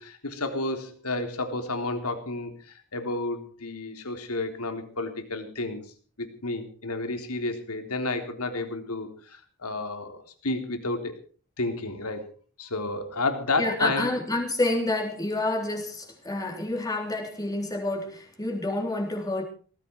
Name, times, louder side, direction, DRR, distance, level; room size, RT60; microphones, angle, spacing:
voice 1, 0.0-2.5 2.9-5.8 6.2-11.2 11.6-12.3 12.6-14.1, left 2 dB, 85° left, 3.5 m, -31 dB
voice 2, 13.6-19.4, left 2 dB, 15° left, 3.7 m, -28 dB
18.5 x 15.5 x 4.6 m
head